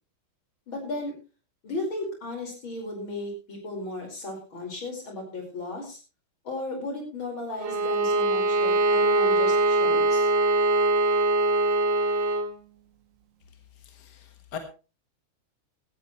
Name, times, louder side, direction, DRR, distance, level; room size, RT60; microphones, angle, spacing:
voice 1, 0.7-1.2 1.6-6.0 6.4-10.3, left 2 dB, 85° left, 2 dB, 5.8 m, -35 dB
Bowed string instrument, 7.6-12.5, right 2 dB, 70° right, 2.0 m, -22 dB
voice 2, 13.8-14.6, left 8 dB, 55° left, 6 dB, 2.1 m, -41 dB
16.5 x 13.5 x 3.2 m, 0.32 s
omnidirectional pair, 2.1 m